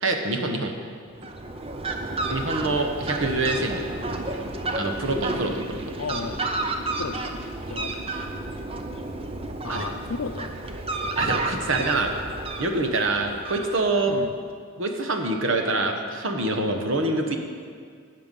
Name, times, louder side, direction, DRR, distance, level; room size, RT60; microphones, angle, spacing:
voice 1, 0.0-0.7 2.3-3.9 4.7-5.8 9.7-9.9 11.2-12.1 12.6-14.1 14.8-17.4, right 2 dB, 60° right, 4 dB, 1.1 m, -25 dB
Fowl, 1.1-14.1, right 2 dB, 25° right, 0.6 m, -31 dB
voice 2, 6.0-6.5 7.0-7.4 7.7-8.1 9.6-10.8 11.8-12.0 14.1-14.3, left 4 dB, 75° left, 9 dB, 0.6 m, -35 dB
17.0 x 5.8 x 5.4 m, 2.1 s
head